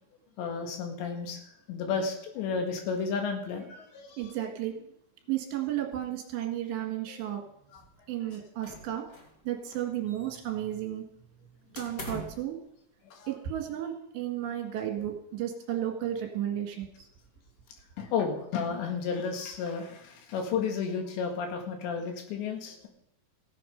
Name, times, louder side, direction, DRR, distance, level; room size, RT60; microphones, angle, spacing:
voice 1, 0.4-1.4 1.7-4.2 7.1-7.2 13.1-13.3 18.0-22.9, left 5 dB, 75° left, 2 dB, 4.1 m, -32 dB
voice 2, 4.2-4.7 5.3-7.4 8.1-9.0 9.5-11.0 11.7-12.6 13.3-16.9, right 11 dB, 75° right, 3 dB, 4.0 m, -33 dB
sound 1, 8.6-9.4 9.7-10.6 11.7-12.5, equal, 35° left, 1.4 m, -42 dB
16.0 x 10.0 x 5.3 m, 0.74 s
omnidirectional pair, 5.2 m